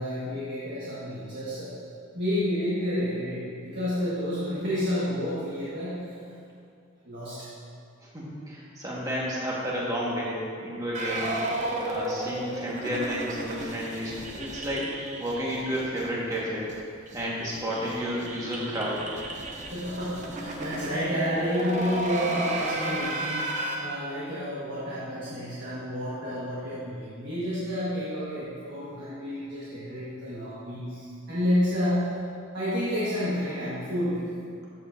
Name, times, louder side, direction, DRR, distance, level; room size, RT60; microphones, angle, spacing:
voice 1, 0.0-1.7 2.1-6.1 7.0-7.5 19.7-32.0 32.5-34.3, equal, 55° right, -10 dB, 1.7 m, -30 dB
voice 2, 8.0-11.3 11.9-14.1 14.4-14.9 15.2-16.7 17.1-19.1, equal, 15° right, -6 dB, 1.6 m, -31 dB
sound 1, 10.9-16.0 16.3-16.4 16.7-16.8 17.1-23.8, right 1 dB, 35° right, 0.8 m, -33 dB
13.5 x 7.0 x 2.7 m, 2.4 s
head